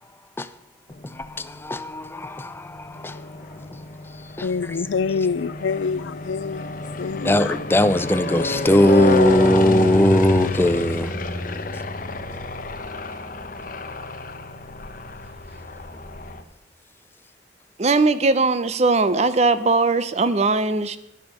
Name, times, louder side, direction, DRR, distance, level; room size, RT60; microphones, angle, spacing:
sound 1, 0.9-1.7 2.4-16.4, left 2 dB, 45° left, 1.0 m, -29 dB
voice 1, 1.0-3.2 4.4-4.8 7.2-11.2, left 1 dB, 10° left, 0.4 m, -20 dB
voice 2, 4.4-7.5, left 5 dB, 80° left, 0.4 m, -26 dB
voice 3, 17.8-21.0, right 3 dB, 35° right, 0.6 m, -19 dB
10.5 x 9.6 x 6.3 m
head